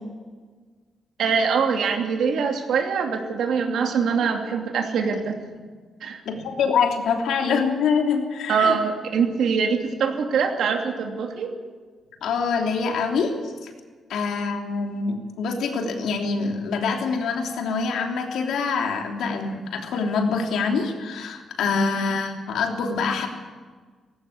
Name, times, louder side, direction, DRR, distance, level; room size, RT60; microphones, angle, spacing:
voice 1, 1.2-5.4 6.0-6.2 8.5-11.5, right 6 dB, 75° right, 3 dB, 2.8 m, -23 dB
voice 2, 6.2-8.8 12.2-13.4 13.6-13.7 14.1-23.3, left 5 dB, 90° left, 3 dB, 3.2 m, -25 dB
19.0 x 16.5 x 8.6 m, 1.5 s
wide cardioid pair, 155°, 0 cm